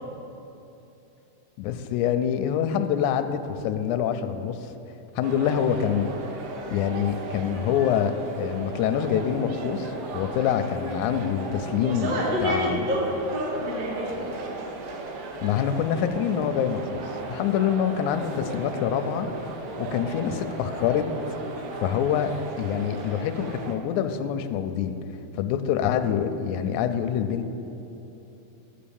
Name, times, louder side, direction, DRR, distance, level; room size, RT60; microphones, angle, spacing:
voice 1, 1.6-4.7 5.2-6.1 6.7-12.9 15.4-17.0 17.3-19.3 19.8-21.1 21.7-22.3 22.6-25.0 25.4-27.5, left 9 dB, 80° left, 8 dB, 1.9 m, -26 dB
Crowd reaction at ice hockey match, 5.2-23.7, right 3 dB, 75° right, 2.3 m, -36 dB
voice 2, 11.9-13.1 13.3-14.6, equal, 30° right, -3 dB, 0.9 m, -28 dB
12.0 x 5.0 x 7.1 m, 2.9 s
omnidirectional pair, 3.6 m